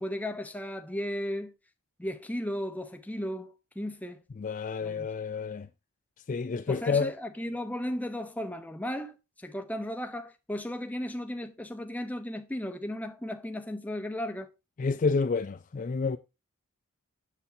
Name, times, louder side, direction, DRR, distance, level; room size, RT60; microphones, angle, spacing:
voice 1, 0.0-1.5 2.0-4.2 4.8-5.1 6.7-14.5, left 1 dB, 5° left, 0.7 m, -35 dB
voice 2, 4.4-5.7 6.3-7.1 14.8-16.2, left 4 dB, 35° left, 0.4 m, -29 dB
7.9 x 6.9 x 2.7 m
head